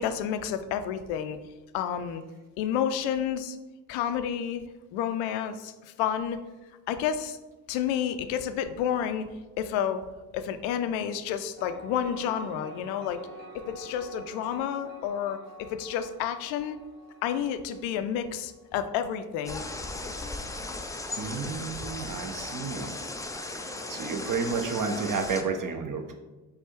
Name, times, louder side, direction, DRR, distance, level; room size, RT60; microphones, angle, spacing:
voice 1, 0.0-1.4 1.7-2.2 2.6-3.6 3.9-4.7 4.9-6.4 6.9-7.4 7.7-9.3 9.6-10.0 10.3-13.2 13.5-16.8 17.2-19.7, left 9 dB, 70° left, 10 dB, 0.5 m, -30 dB
sound 1, 11.6-19.1, left 1 dB, 20° right, 1.1 m, -47 dB
sound 2, 19.5-25.4, left 2 dB, 5° left, 0.4 m, -37 dB
voice 2, 21.2-22.9 23.5-26.1, right 5 dB, 40° right, 5 dB, 0.9 m, -31 dB
4.7 x 2.5 x 4.5 m, 1.1 s
hypercardioid pair, 40°, 50 cm